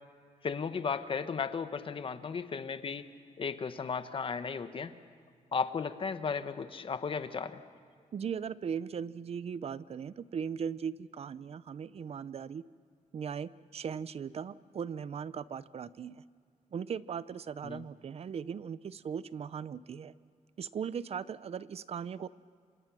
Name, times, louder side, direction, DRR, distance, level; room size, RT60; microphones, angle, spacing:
voice 1, 0.4-3.0 3.4-5.0 5.5-7.6 17.6-17.8, left 5 dB, 40° left, 11 dB, 1.1 m, -35 dB
voice 2, 8.1-12.6 13.1-16.2 16.7-20.1 20.6-22.3, right 7 dB, 50° right, 17 dB, 0.6 m, -38 dB
27.5 x 26.0 x 6.2 m, 2.2 s
wide cardioid pair, 140°, 13 cm